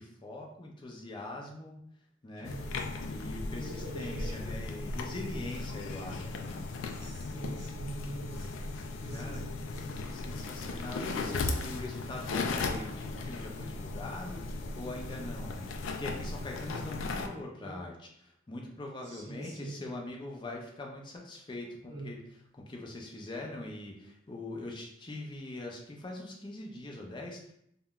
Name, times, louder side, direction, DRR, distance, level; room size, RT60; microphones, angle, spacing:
voice 1, 0.0-1.7 2.2-2.5 3.0-6.6 8.3-8.5 9.1-9.4 10.0-15.7 16.0-17.9 18.2-22.2 22.5-27.5, left 2 dB, 25° left, 0 dB, 0.5 m, -42 dB
sound 1, 2.4-17.3, left 3 dB, 85° left, 0.3 m, -37 dB
voice 2, 2.4-2.9 3.5-4.8 6.9-8.5 9.0-10.1 12.0-12.2 17.6-17.8 19.0-19.8 21.8-22.1, right 1 dB, 20° right, -7 dB, 1.3 m, -44 dB
3.6 x 2.1 x 2.3 m, 0.73 s
head